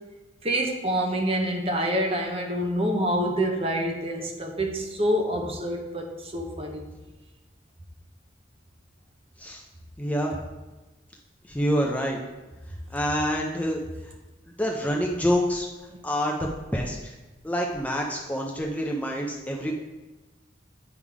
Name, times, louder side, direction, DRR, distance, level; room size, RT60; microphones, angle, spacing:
voice 1, 0.4-6.8, equal, 30° right, 2 dB, 0.8 m, -27 dB
voice 2, 10.0-10.4 11.5-12.2 12.9-13.8 14.6-15.7 16.0-17.1 17.4-19.7, equal, 10° left, -1 dB, 0.6 m, -27 dB
9.4 x 3.7 x 4.8 m, 1.1 s
head